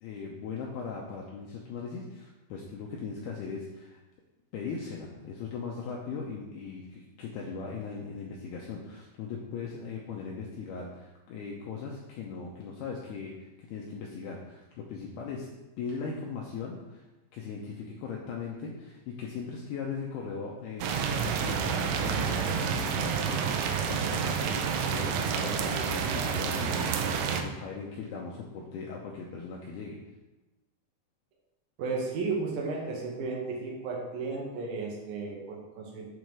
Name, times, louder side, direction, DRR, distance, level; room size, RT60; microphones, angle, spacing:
voice 1, 0.0-4.0 4.5-15.5 15.8-17.1 17.3-24.6 24.9-30.0, left 5 dB, 90° left, -2 dB, 2.3 m, -39 dB
sound 1, 20.8-27.4, right 6 dB, 90° right, 3.2 m, -29 dB
voice 2, 31.8-36.1, right 4 dB, 70° right, -1 dB, 2.3 m, -34 dB
7.4 x 4.7 x 5.3 m, 1.1 s
omnidirectional pair, 5.4 m